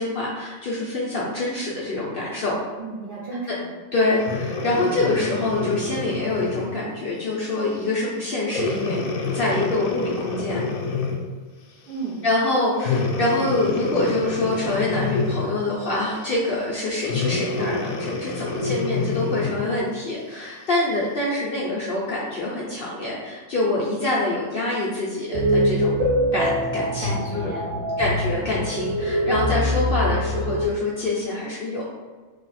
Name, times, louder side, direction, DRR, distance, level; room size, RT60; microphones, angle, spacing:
voice 1, 0.0-2.6 3.5-3.6 3.9-10.6 12.2-26.0 26.3-27.5 28.0-31.8, left 2 dB, 55° left, -6 dB, 0.6 m, -25 dB
voice 2, 2.8-3.7 11.9-12.2 18.5-18.9 27.0-28.0, right 2 dB, 50° right, -5 dB, 0.7 m, -34 dB
Breathing, 4.2-6.8 7.4-7.6 8.5-11.4 12.8-15.6 17.0-19.8 20.4-20.5, left 3 dB, 75° left, 1.0 m, -28 dB
sound 1, 25.3-30.7, equal, 70° right, 1.4 m, -23 dB
3.3 x 2.4 x 4.0 m, 1.4 s
omnidirectional pair, 1.5 m